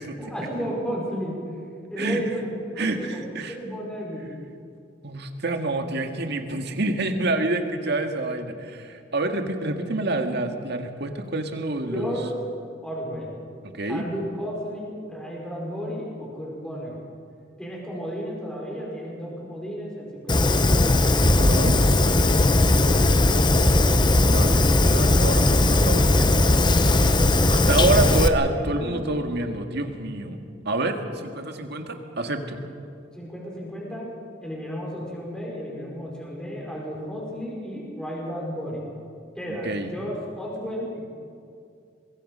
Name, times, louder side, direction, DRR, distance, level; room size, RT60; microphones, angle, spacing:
voice 1, 0.2-1.4 1.9-2.5 2.7-3.2 3.5-4.3 11.9-12.3 12.8-13.4 13.9-16.9 17.6-21.0 22.1-23.8 27.8-29.1 33.1-34.1 34.4-38.9 39.4-41.1, equal, 5° left, -4 dB, 5.3 m, -33 dB
voice 2, 2.8-3.6 5.0-12.1 13.7-14.0 21.4-21.8 24.3-26.8 27.5-30.4 30.7-32.6 39.6-39.9, right 2 dB, 60° right, 5 dB, 2.0 m, -27 dB
Fire, 20.3-28.3, left 2 dB, 25° left, 0.9 m, -18 dB
23.5 x 22.5 x 5.6 m, 2.4 s
head